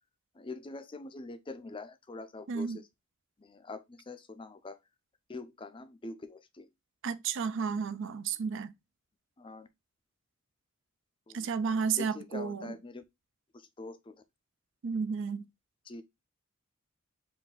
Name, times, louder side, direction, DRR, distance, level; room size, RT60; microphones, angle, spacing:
voice 1, 0.4-2.8 3.4-4.8 5.3-6.7 9.4-9.7 11.3-11.5 12.0-13.0 13.5-14.2 15.9-16.0, left 3 dB, 25° left, 0.5 m, -44 dB
voice 2, 2.5-2.8 7.0-8.7 11.3-12.8 14.8-15.5, right 5 dB, 60° right, 0.4 m, -32 dB
4.7 x 2.6 x 3.8 m
head